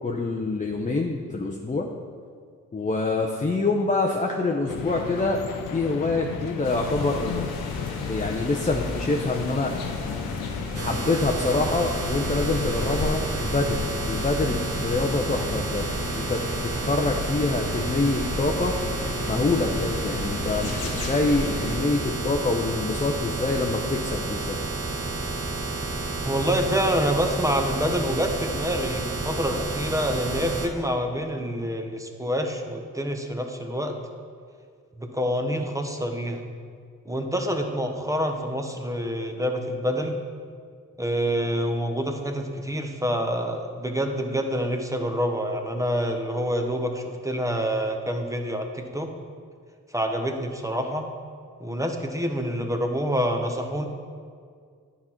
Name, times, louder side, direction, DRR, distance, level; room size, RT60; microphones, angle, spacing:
voice 1, 0.0-1.9 2.7-5.4 5.7-7.5 7.7-9.7 10.8-15.9 16.1-18.8 19.3-24.6, left 3 dB, 20° left, 0 dB, 0.7 m, -26 dB
sound 1, 4.7-13.2, left 7 dB, 65° left, 0.7 m, -36 dB
sound 2, 6.6-21.8, left 3 dB, 85° left, 0.9 m, -33 dB
sound 3, 10.7-30.7, right 3 dB, 40° right, 1.2 m, -31 dB
voice 2, 26.2-34.0 35.0-36.4 37.1-40.2 41.0-49.1 49.9-51.1 51.6-53.9, equal, 10° right, 4 dB, 0.9 m, -27 dB
9.6 x 4.2 x 4.4 m, 2.1 s
supercardioid pair, 40°, 36 cm